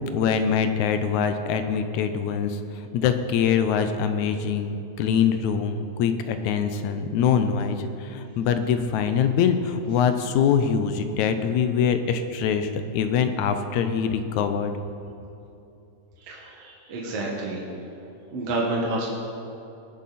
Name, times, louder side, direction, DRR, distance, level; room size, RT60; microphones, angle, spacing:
voice 1, 0.1-2.6 2.9-14.7, left 7 dB, 85° left, 8 dB, 2.1 m, -24 dB
voice 2, 16.3-17.6 18.3-19.1, right 2 dB, 60° right, -4 dB, 2.5 m, -29 dB
20.0 x 7.8 x 4.2 m, 2.8 s
omnidirectional pair, 3.3 m